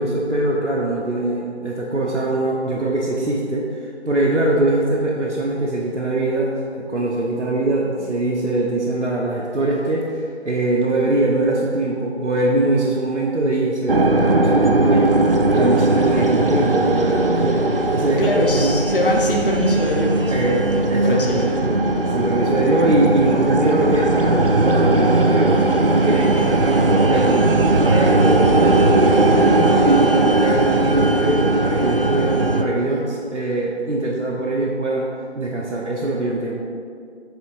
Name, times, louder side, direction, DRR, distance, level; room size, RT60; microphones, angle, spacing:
voice 1, 0.0-15.1 15.5-18.8 20.3-21.5 22.1-25.6 25.9-27.5 27.8-36.6, right 2 dB, 85° right, -3 dB, 0.9 m, -22 dB
sound 1, 13.9-32.6, right 2 dB, 55° right, 0.5 m, -18 dB
voice 2, 18.2-21.7, left 1 dB, 50° left, -1 dB, 0.8 m, -23 dB
7.9 x 2.8 x 4.6 m, 2.3 s
figure-of-eight pair, 175°, 34 cm